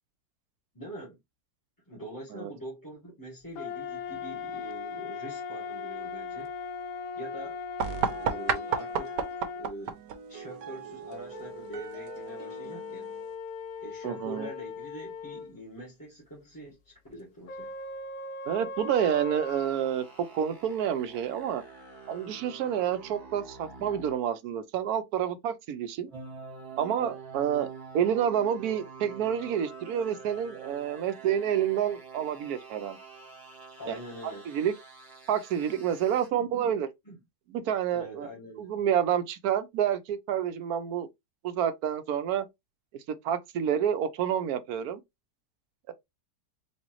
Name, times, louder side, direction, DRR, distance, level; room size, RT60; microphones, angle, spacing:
voice 1, 0.7-1.2 1.9-6.5 7.1-7.6 8.1-9.2 9.5-10.0 10.3-13.1 13.8-17.7 33.8-34.5 36.3-36.5 37.0-37.2 37.9-38.7, right 1 dB, 15° left, 1.2 m, -44 dB
sound 1, 3.6-9.7 11.3-15.5 17.5-19.7, left 4 dB, 65° left, 0.9 m, -39 dB
sound 2, 7.8-13.3, right 7 dB, 85° right, 1.4 m, -34 dB
voice 2, 14.0-14.5 18.5-21.6 22.1-26.1 26.8-27.7 27.9-33.0 33.9-34.0 34.5-34.7 35.3-36.9 37.5-38.3 38.6-41.1 41.4-42.5 43.2-45.0 45.9-46.0, right 9 dB, 70° right, 1.0 m, -28 dB
sound 3, 19.4-24.2 26.1-36.3, right 5 dB, 15° right, 1.4 m, -46 dB
4.2 x 2.7 x 2.9 m
omnidirectional pair, 1.8 m